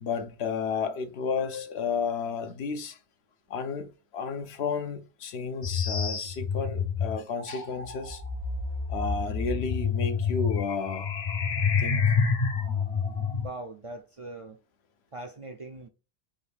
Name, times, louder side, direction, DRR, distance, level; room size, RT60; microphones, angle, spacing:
voice 1, 0.0-3.0 3.5-8.2 8.9-11.1 11.8-12.2, left 5 dB, 80° left, 0.9 m, -32 dB
sound 1, 5.6-13.5, left 5 dB, 45° left, 0.8 m, -28 dB
voice 2, 13.4-14.6 15.1-15.9, right 2 dB, 45° right, 0.4 m, -41 dB
5.1 x 2.3 x 3.4 m
omnidirectional pair, 1.1 m